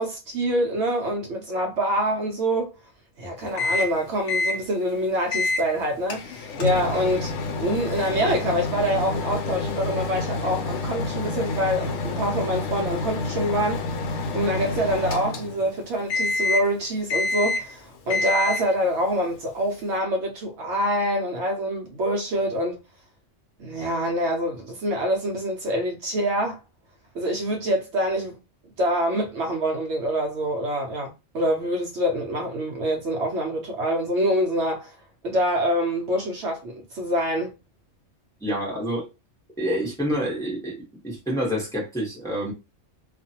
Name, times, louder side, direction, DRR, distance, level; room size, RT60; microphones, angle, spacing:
voice 1, 0.0-2.7 3.2-13.8 14.3-22.8 23.6-26.6 27.1-28.3 28.8-34.9 35.2-37.5, equal, 65° right, 0.9 m, -25 dB
Microwave oven, 3.6-4.0 4.3-4.6 5.3-5.7 6.1-15.7 16.1-16.7 17.1-17.7 18.1-18.7, left 3 dB, 70° left, 0.9 m, -28 dB
voice 2, 38.4-39.1 39.6-40.8 41.0-42.5, equal, 5° left, 1.0 m, -27 dB
2.4 x 2.4 x 2.8 m
omnidirectional pair, 1.3 m